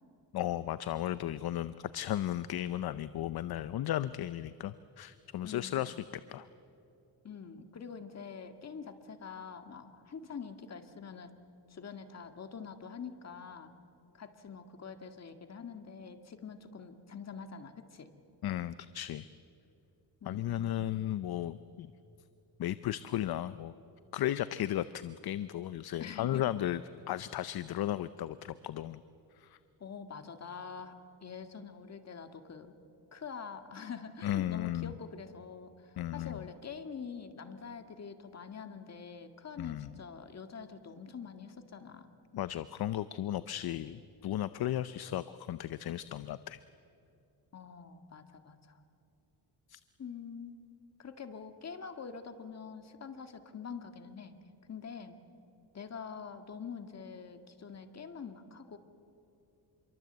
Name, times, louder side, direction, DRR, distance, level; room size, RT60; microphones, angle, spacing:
voice 1, 0.3-6.0 6.3-6.5 18.4-19.3 20.3-21.9 22.6-23.7 24.1-26.8 27.1-29.0 29.4-29.6 34.2-34.9 36.0-36.5 39.6-39.9 42.3-46.6 49.7-49.8, left 12 dB, 60° left, 14 dB, 0.7 m, -35 dB
voice 2, 5.4-5.9 7.2-11.3 11.7-13.7 14.1-18.1 20.2-20.9 26.0-26.4 29.8-32.8 33.1-42.1 47.5-48.8 50.0-50.6 51.0-54.4 54.7-55.2 55.7-58.8, left 6 dB, 35° left, 7 dB, 1.9 m, -45 dB
27.0 x 23.0 x 8.1 m, 2.8 s
cardioid pair, 120°, 43 cm